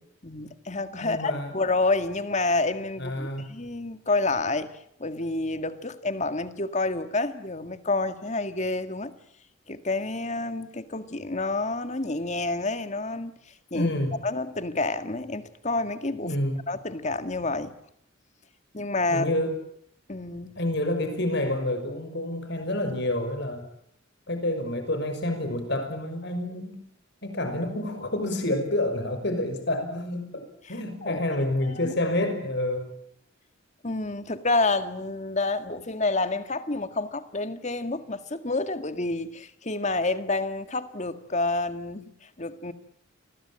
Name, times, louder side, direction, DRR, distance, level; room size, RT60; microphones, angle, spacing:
voice 1, 0.2-4.7 5.0-9.1 9.7-13.3 13.7-13.9 14.2-16.4 16.7-17.7 18.7-19.3 20.1-20.6 30.6-30.7 31.0-31.2 31.6-31.9 33.8-42.7, left 2 dB, 35° left, 10 dB, 1.9 m, -29 dB
voice 2, 1.0-1.5 3.0-3.4 13.7-14.1 16.2-16.6 19.1-19.5 20.6-23.7 24.3-26.8 27.2-30.4 30.7-32.9, left 1 dB, 55° left, 7 dB, 6.0 m, -28 dB
29.0 x 21.0 x 8.8 m, 0.69 s
head